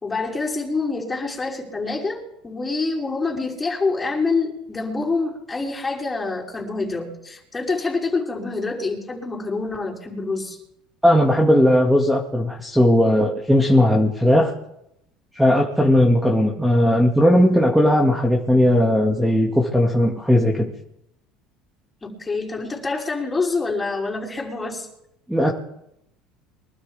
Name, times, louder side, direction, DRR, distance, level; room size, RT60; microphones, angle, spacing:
voice 1, 0.0-10.6 22.0-24.9, left 3 dB, 20° left, -2 dB, 5.5 m, -26 dB
voice 2, 11.0-14.5 15.3-20.7 25.3-25.5, left 1 dB, 5° right, 0 dB, 2.3 m, -17 dB
24.0 x 12.5 x 3.6 m, 0.79 s
supercardioid pair, 100°, 0 cm